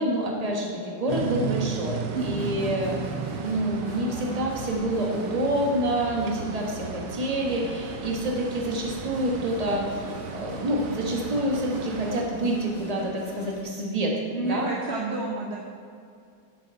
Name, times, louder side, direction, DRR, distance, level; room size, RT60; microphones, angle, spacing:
voice 1, 0.0-3.0 3.3-14.7, right 1 dB, 20° right, -1 dB, 1.3 m, -27 dB
sound 1, 1.1-12.2, right 7 dB, 70° right, 1.2 m, -35 dB
sound 2, 2.0-13.6, left 1 dB, 65° left, 2.3 m, -42 dB
voice 2, 2.1-2.5 14.3-15.6, right 3 dB, 45° right, -2 dB, 1.0 m, -30 dB
7.9 x 7.6 x 5.6 m, 2.3 s
omnidirectional pair, 2.1 m